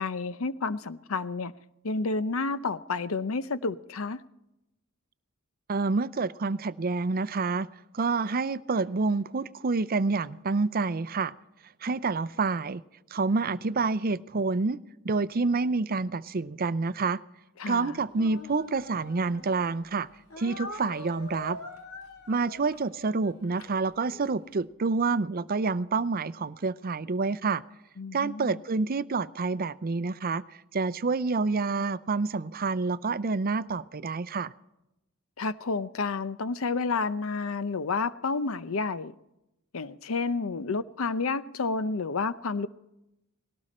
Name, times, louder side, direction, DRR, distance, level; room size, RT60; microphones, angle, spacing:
voice 1, 0.0-1.5 1.8-4.2 17.6-18.0 28.0-28.6 35.4-39.1 39.7-42.7, left 4 dB, 70° left, 0.7 m, -30 dB
voice 2, 5.7-7.7 7.9-11.3 11.8-12.8 13.1-14.8 15.0-17.2 17.7-20.1 20.4-21.6 22.3-27.6 28.1-30.4 30.7-34.5, right 4 dB, 45° right, 0.6 m, -28 dB
Speech, 18.1-19.7 20.3-24.3, left 2 dB, 90° left, 2.6 m, -44 dB
19.5 x 17.5 x 4.3 m
head